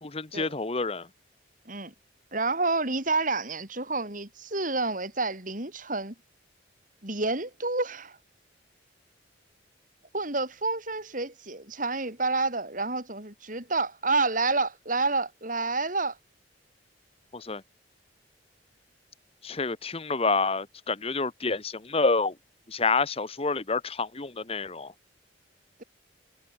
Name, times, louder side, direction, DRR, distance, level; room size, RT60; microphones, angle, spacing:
voice 1, 0.0-1.0 17.3-17.6 19.4-22.3 22.7-24.9, left 4 dB, 30° left, 1.1 m, -28 dB
voice 2, 2.3-6.1 7.0-8.2 10.1-16.2, right 3 dB, 45° right, 6.4 m, -29 dB
head